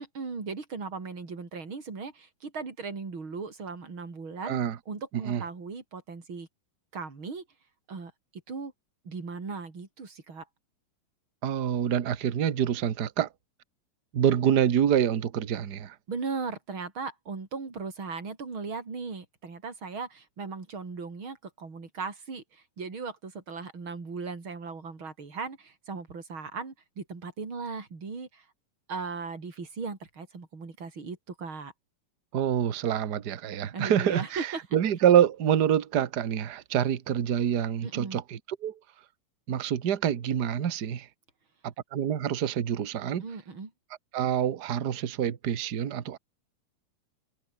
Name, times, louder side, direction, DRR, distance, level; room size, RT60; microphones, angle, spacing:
voice 1, 0.0-4.6 4.9-6.5 6.9-7.4 7.9-8.1 8.5-8.7 9.0-10.5 16.1-28.4 28.9-31.7 33.7-34.6 37.8-38.2 43.2-43.7, right 4 dB, 35° right, 5.1 m, -37 dB
voice 2, 4.4-4.8 5.2-5.4 11.4-13.3 14.1-15.9 32.3-38.7 39.5-41.1 41.6-43.2 44.1-46.2, right 9 dB, 55° right, 1.1 m, -26 dB
omnidirectional pair, 3.9 m